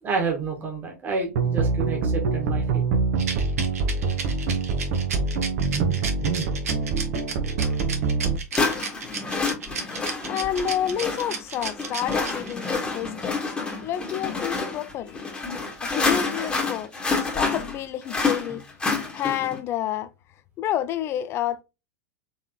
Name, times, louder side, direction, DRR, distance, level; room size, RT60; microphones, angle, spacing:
voice 1, 0.0-2.8 5.7-6.5, right 5 dB, 20° right, 1.6 m, -29 dB
sound 1, 1.3-8.4, right 4 dB, 45° right, 0.9 m, -25 dB
Rattle, 3.2-12.7, right 5 dB, 65° right, 1.1 m, -33 dB
sound 2, 7.6-7.7 8.5-19.6, left 4 dB, 10° left, 1.5 m, -28 dB
voice 2, 10.3-13.4 13.8-15.3 15.8-18.6 19.1-20.1 20.6-21.6, left 10 dB, 30° left, 0.5 m, -29 dB
4.5 x 3.4 x 2.9 m
figure-of-eight pair, 95°, 9 cm